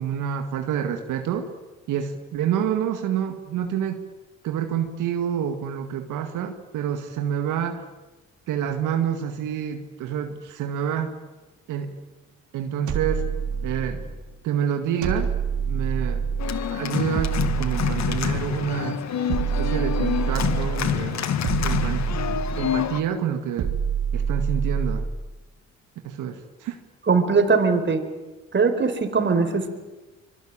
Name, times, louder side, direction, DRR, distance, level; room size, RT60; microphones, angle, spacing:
voice 1, 0.0-1.5 1.9-4.0 4.4-7.8 8.5-11.2 11.7-12.0 12.5-13.3 13.6-14.0 14.4-15.3 15.7-16.2 16.7-19.0 19.4-21.3 21.6-22.1 22.6-23.8 24.1-25.1 26.0-26.8, right 8 dB, 90° right, 5 dB, 2.1 m, -28 dB
sound 1, 12.9-14.2 15.0-16.6 17.1-18.6 19.3-20.9 21.4-22.8 23.6-25.2, right 6 dB, 75° right, 3.4 m, -26 dB
Organ, 16.4-23.0, left 9 dB, 65° left, 1.8 m, -27 dB
voice 2, 27.1-28.0 28.5-29.7, right 4 dB, 40° right, 7 dB, 4.4 m, -20 dB
25.5 x 23.5 x 8.9 m, 1.1 s
cardioid pair, 90°, 30 cm